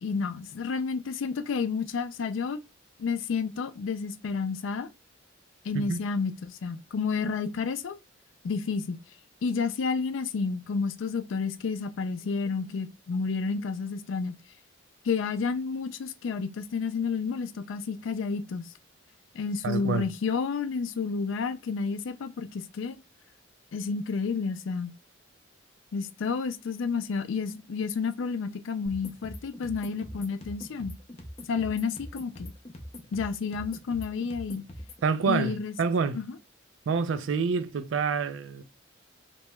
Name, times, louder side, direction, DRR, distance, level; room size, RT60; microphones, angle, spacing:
voice 1, 0.0-2.6 3.0-4.9 5.6-8.0 8.4-9.0 9.4-14.4 15.0-18.7 19.3-23.0 23.7-24.9 25.9-30.9 31.5-32.5 33.1-34.6 35.3-35.7 36.1-36.3, left 5 dB, 75° left, 0.4 m, -30 dB
voice 2, 19.6-20.1 35.0-36.2 36.9-38.6, right 5 dB, 75° right, 0.4 m, -27 dB
sound 1, 28.9-35.1, left 1 dB, 30° left, 0.6 m, -43 dB
3.0 x 2.9 x 2.2 m
head